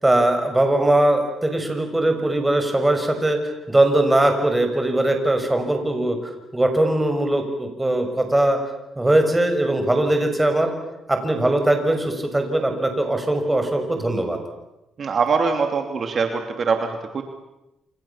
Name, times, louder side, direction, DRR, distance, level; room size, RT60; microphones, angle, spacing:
voice 1, 0.0-6.2 6.5-8.6 9.0-10.7 11.1-14.4, right 1 dB, 10° right, 5 dB, 6.5 m, -20 dB
voice 2, 15.0-16.9 17.1-17.2, right 5 dB, 50° right, 5 dB, 2.9 m, -22 dB
28.0 x 27.5 x 7.4 m, 0.95 s
cardioid pair, 90°, 0 cm